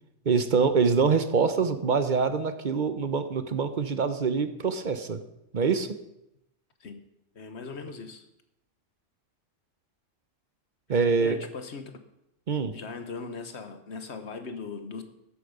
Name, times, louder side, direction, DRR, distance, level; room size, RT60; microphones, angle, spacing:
voice 1, 0.3-5.2 5.5-5.9 10.9-11.4 12.5-12.7, right 5 dB, 45° right, 10 dB, 0.9 m, -25 dB
voice 2, 7.3-8.2 11.2-11.9 12.7-15.0, left 4 dB, 60° left, 8 dB, 1.4 m, -39 dB
13.5 x 8.4 x 5.3 m, 0.84 s
omnidirectional pair, 1.3 m